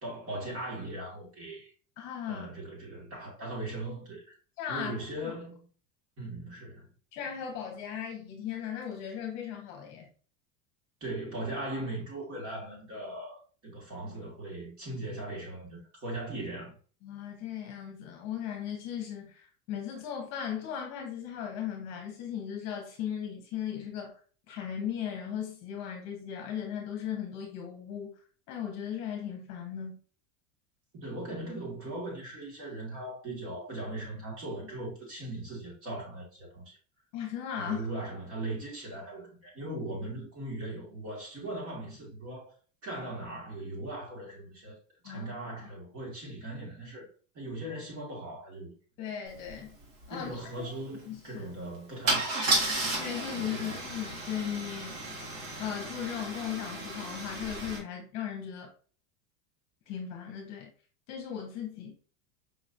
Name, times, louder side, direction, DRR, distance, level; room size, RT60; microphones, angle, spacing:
voice 1, 0.0-1.7 2.3-4.4 4.7-5.7 6.2-6.9 11.0-16.7 30.9-36.8 37.5-42.6 42.8-44.8 45.0-47.1 47.3-48.7 50.1-52.6 53.3-53.8, right 1 dB, 35° right, 1.9 m, -39 dB
voice 2, 2.0-2.5 4.6-5.3 7.1-10.1 17.0-24.2 24.5-28.1 28.5-30.0 37.1-37.9 45.0-45.3 49.0-49.8 50.1-50.7 51.1-51.5 53.0-55.2 55.6-58.7 59.9-60.7 61.1-62.0, left 9 dB, 40° left, 1.1 m, -37 dB
Car / Engine starting / Idling, 49.4-49.5 49.8-50.1 52.1-57.8, right 2 dB, 50° right, 1.7 m, -33 dB
5.3 x 3.0 x 2.6 m
supercardioid pair, 165°, 41 cm